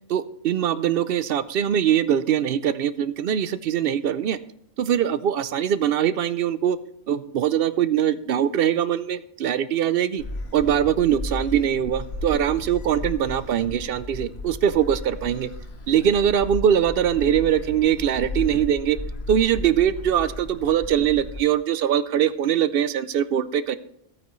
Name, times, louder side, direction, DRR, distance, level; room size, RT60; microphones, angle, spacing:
voice 1, 0.1-4.4 4.8-6.8 7.1-10.2 10.5-15.5 15.9-19.0 19.3-23.8, right 9 dB, 65° right, 14 dB, 0.7 m, -22 dB
Gull seagull, 10.2-21.4, left 2 dB, 65° left, 1.4 m, -35 dB
14.5 x 8.6 x 3.1 m, 0.73 s
omnidirectional pair, 1.2 m